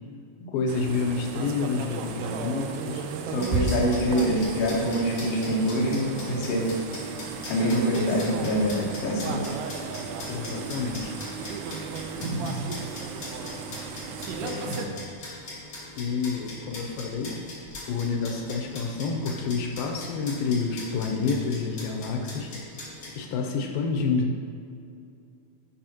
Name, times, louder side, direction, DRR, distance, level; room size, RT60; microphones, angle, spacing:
voice 1, 0.5-3.1 10.3-11.2 14.4-15.1 16.0-17.4 17.9-22.5 23.2-24.3, left 4 dB, 90° left, 2 dB, 2.4 m, -29 dB
sound 1, 0.7-14.9, right 5 dB, 85° right, 2.4 m, -34 dB
voice 2, 3.3-6.7 7.5-9.6 12.2-12.6 14.7-14.8, equal, 60° left, -3 dB, 1.8 m, -25 dB
sound 2, 3.4-23.1, left 2 dB, 40° left, 2.2 m, -42 dB
11.0 x 5.6 x 2.9 m, 2.5 s
omnidirectional pair, 4.1 m